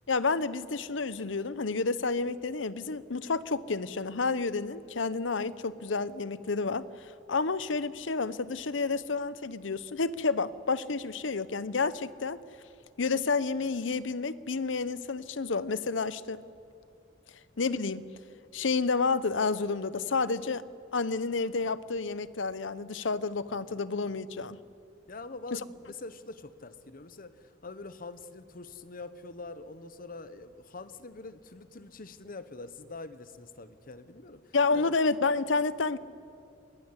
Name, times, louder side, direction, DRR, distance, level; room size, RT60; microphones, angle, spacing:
voice 1, 0.1-6.9 7.3-12.4 13.0-16.4 17.6-18.1 18.5-20.6 20.9-24.6 25.5-25.6 34.5-36.0, left 4 dB, 90° left, 16 dB, 0.8 m, -30 dB
voice 2, 25.1-34.9, left 3 dB, 50° left, 12 dB, 1.1 m, -45 dB
23.5 x 19.5 x 9.9 m, 2.7 s
head